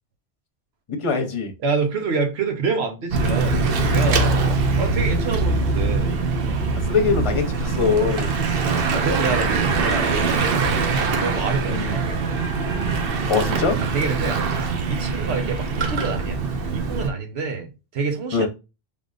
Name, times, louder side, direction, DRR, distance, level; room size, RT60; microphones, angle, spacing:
voice 1, 0.9-1.5 6.9-8.3 11.7-12.0 13.3-13.8 18.3-18.5, left 5 dB, 35° left, 0.8 m, -22 dB
voice 2, 1.6-6.1 7.6-7.8 8.9-12.4 13.8-16.4 16.7-18.5, right 4 dB, 85° right, 1.2 m, -27 dB
Bicycle / Mechanisms, 3.1-17.1, right 4 dB, 65° right, 0.9 m, -23 dB
3.6 x 3.4 x 2.4 m
omnidirectional pair, 1.1 m